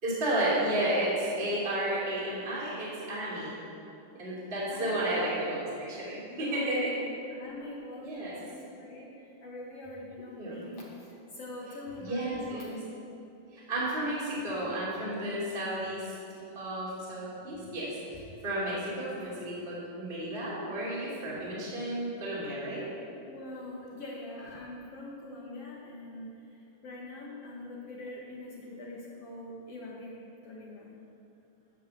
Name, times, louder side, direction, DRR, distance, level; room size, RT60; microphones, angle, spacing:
voice 1, 0.0-3.6 4.2-7.0 8.0-8.4 10.4-10.6 12.0-12.8 13.5-16.1 16.5-22.8, right 1 dB, 20° right, -8 dB, 2.6 m, -32 dB
voice 2, 4.7-5.4 6.3-12.8 23.2-30.9, left 2 dB, 60° left, -4 dB, 2.0 m, -44 dB
13.0 x 5.8 x 7.6 m, 2.7 s
omnidirectional pair, 3.6 m